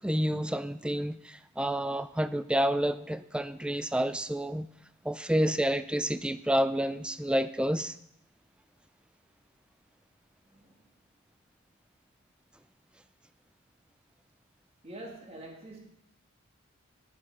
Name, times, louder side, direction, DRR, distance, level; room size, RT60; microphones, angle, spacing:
voice 1, 0.0-4.7 5.0-7.9, equal, 5° right, 0.4 m, -29 dB
voice 2, 10.5-10.8 14.8-15.8, right 1 dB, 30° right, 2.3 m, -45 dB
12.5 x 10.0 x 4.9 m
head